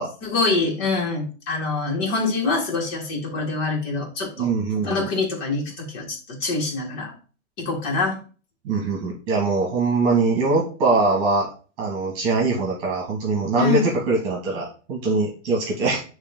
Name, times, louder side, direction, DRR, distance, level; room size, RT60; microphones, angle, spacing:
voice 1, 0.2-4.5 4.8-7.1 7.6-8.2 13.6-13.9, left 3 dB, 30° left, -1 dB, 2.4 m, -25 dB
voice 2, 4.4-5.1 8.6-11.5 11.8-16.0, right 3 dB, 30° right, -1 dB, 1.9 m, -22 dB
9.8 x 3.3 x 3.8 m, 0.37 s
supercardioid pair, 175°, 39 cm